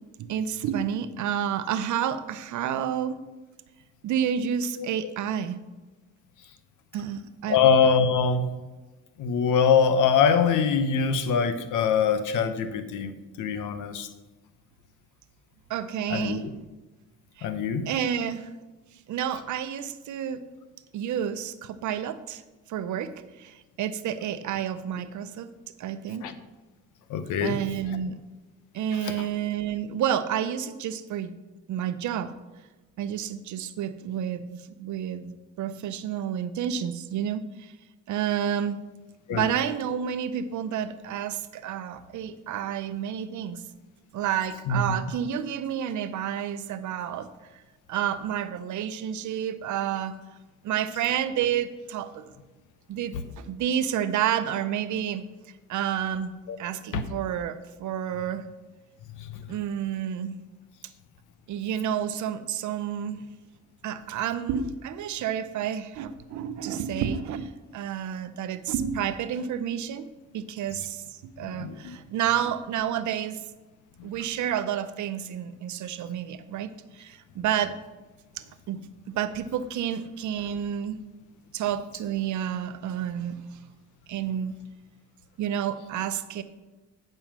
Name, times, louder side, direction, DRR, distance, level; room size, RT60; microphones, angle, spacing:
voice 1, 0.2-3.2 4.0-5.6 6.9-7.6 15.7-16.5 17.4-17.5 17.9-18.5 19.1-20.4 20.9-22.4 22.7-25.5 25.8-26.3 27.4-28.2 28.7-31.3 31.7-32.3 33.0-37.7 38.1-38.8 39.3-43.6 44.1-47.3 47.9-50.2 50.6-52.3 52.9-55.2 55.7-58.4 59.5-60.4 61.5-63.3 63.8-70.1 70.3-73.4 74.0-77.8 78.4-78.8 79.1-81.0 81.5-83.6 84.1-84.5 85.4-86.4, right 9 dB, 75° right, 12 dB, 0.7 m, -30 dB
voice 2, 7.5-8.5 9.2-13.1 13.4-14.1 16.1-16.4 17.4-17.9 26.2-26.3 27.1-27.6 29.0-29.3 39.3-39.5 44.7-45.0 53.1-53.2 56.5-56.6 56.9-57.0 59.2-59.4 71.4-72.0, left 6 dB, 85° left, 10 dB, 0.9 m, -23 dB
8.9 x 5.5 x 6.1 m, 1.2 s
cardioid pair, 90°, 30 cm